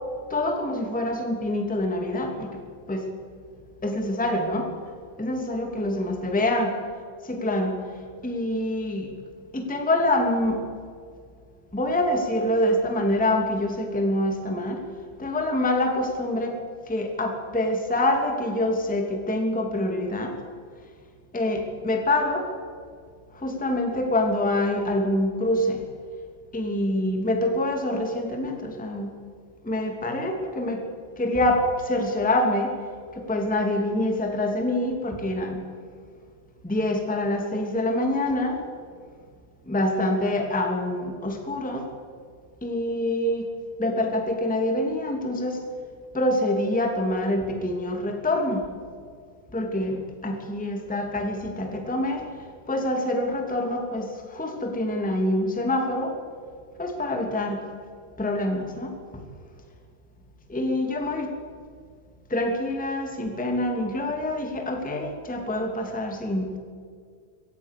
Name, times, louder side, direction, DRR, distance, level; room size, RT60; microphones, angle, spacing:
voice 1, 0.3-2.6 2.9-3.1 3.8-4.7 5.2-6.7 7.2-7.7 8.2-9.1 9.5-10.6 11.7-14.8 15.2-16.6 16.9-20.3 21.3-22.5 23.3-25.8 26.5-29.1 29.6-30.8 31.2-32.7 33.1-35.6 36.6-38.6 39.6-41.9 42.6-43.5 43.8-45.6 46.1-48.6 49.5-52.2 52.7-56.1 56.8-57.6 58.2-59.2 60.5-61.3 62.3-66.6, left 1 dB, 5° left, 3 dB, 1.1 m, -26 dB
24.5 x 17.5 x 6.7 m, 2.1 s
omnidirectional pair, 5.2 m